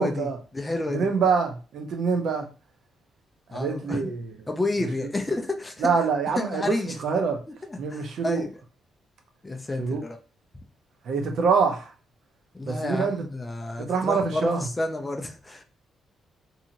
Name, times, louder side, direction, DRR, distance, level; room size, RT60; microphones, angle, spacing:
voice 1, 0.0-0.4 0.9-2.5 3.5-4.3 5.8-6.7 7.0-7.4 7.8-8.4 9.8-10.0 11.1-11.9 12.6-13.2 13.8-14.6, right 5 dB, 60° right, 0.6 m, -25 dB
voice 2, 0.5-1.1 3.5-4.1 4.5-6.1 6.3-7.0 7.7-8.5 9.4-10.2 12.5-15.6, left 2 dB, 15° left, 0.4 m, -30 dB
2.8 x 2.7 x 2.5 m
cardioid pair, 165°, 0 cm